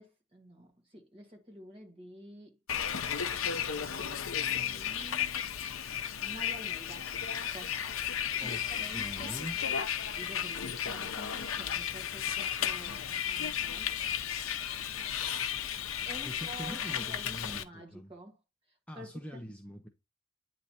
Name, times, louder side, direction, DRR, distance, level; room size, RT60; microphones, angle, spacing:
voice 1, 0.0-2.6 3.7-5.4 6.2-7.8 8.1-9.4 10.1-13.9 16.0-18.4 18.7-19.1, right 1 dB, 25° right, 1.9 m, -49 dB
Bus, 2.7-17.6, left 9 dB, 65° left, 0.7 m, -34 dB
voice 2, 8.4-9.6 16.2-18.1 18.9-19.9, equal, 5° left, 0.6 m, -43 dB
9.4 x 3.2 x 4.1 m
head